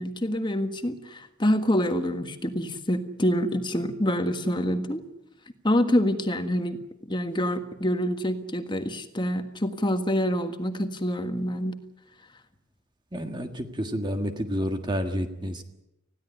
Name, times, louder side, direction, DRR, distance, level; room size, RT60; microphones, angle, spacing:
voice 1, 0.0-5.0 5.6-6.8 7.1-11.8, equal, 20° left, 7 dB, 1.6 m, -26 dB
voice 2, 13.1-15.6, equal, 20° right, 6 dB, 1.6 m, -29 dB
20.5 x 16.0 x 9.7 m, 0.91 s
head